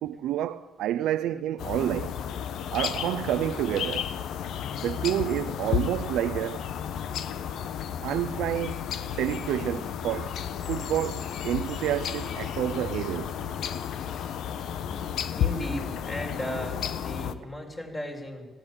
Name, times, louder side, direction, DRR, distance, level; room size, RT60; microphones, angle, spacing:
voice 1, 0.0-2.2 2.7-4.1 4.8-6.7 8.0-8.8 9.1-10.4 10.7-13.3, right 12 dB, 85° right, 0.6 m, -29 dB
sound 1, 1.6-17.3, left 9 dB, 75° left, 1.0 m, -32 dB
voice 2, 15.3-18.5, equal, 25° left, 6.0 m, -36 dB
19.5 x 16.5 x 8.9 m
cardioid pair, 90°, 0 cm